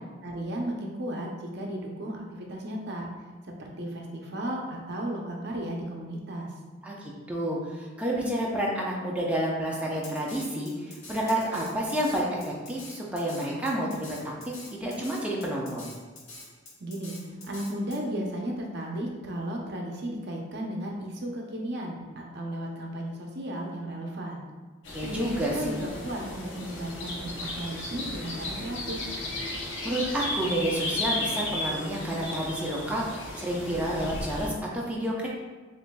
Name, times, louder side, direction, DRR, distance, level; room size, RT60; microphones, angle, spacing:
voice 1, 0.2-3.1 3.5-6.5 16.8-24.4 25.0-29.1, right 1 dB, 55° right, 0 dB, 0.6 m, -35 dB
voice 2, 6.8-14.2 14.4-15.9 24.9-25.7 29.8-35.3, right 1 dB, 5° right, -4 dB, 0.6 m, -30 dB
Drum kit, 10.0-18.0, left 2 dB, 85° left, 1.1 m, -45 dB
sound 1, 24.8-34.5, left 1 dB, 60° left, 0.7 m, -34 dB
6.9 x 2.6 x 2.2 m, 1.3 s
head